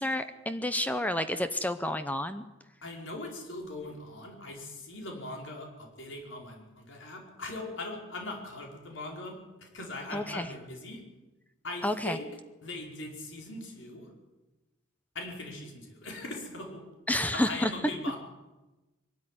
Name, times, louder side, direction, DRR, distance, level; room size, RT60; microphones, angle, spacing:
voice 1, 0.0-2.4 10.1-10.5 11.8-12.2 17.1-17.7, left 1 dB, 10° left, 10 dB, 0.9 m, -30 dB
voice 2, 2.8-11.0 11.6-12.3 12.6-14.1 15.1-16.8 17.3-18.2, left 2 dB, 85° left, 1 dB, 4.9 m, -40 dB
22.5 x 13.5 x 9.9 m, 1.1 s
head